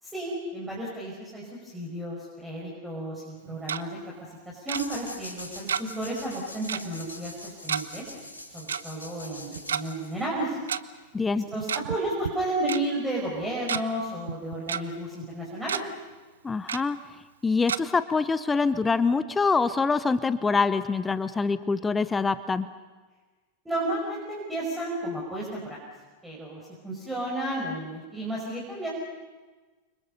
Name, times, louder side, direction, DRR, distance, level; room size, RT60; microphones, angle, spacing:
voice 1, 0.0-4.0 4.3-8.1 8.5-10.6 11.5-15.9 23.6-25.8 26.2-28.9, right 1 dB, 10° right, -4 dB, 5.9 m, -32 dB
Tick-tock, 3.4-3.8 4.7-4.8 5.7-6.0 6.3-6.4 6.7-6.9 7.7-7.8 8.7-8.8 9.6-9.8 10.7-10.8 11.5-12.0 12.2-12.3 12.7-12.8 13.4-13.8 14.3-14.8 15.2-15.3 15.6-15.8 16.7-16.8 17.7-17.8, right 8 dB, 65° right, 0.8 m, -30 dB
sound 1, 4.7-10.4, left 1 dB, 80° left, 3.9 m, -43 dB
voice 2, 11.1-11.5 16.4-17.0 17.4-22.7, left 4 dB, 15° left, 15 dB, 0.7 m, -25 dB
29.5 x 25.5 x 5.6 m, 1.3 s
figure-of-eight pair, 90°, 0 cm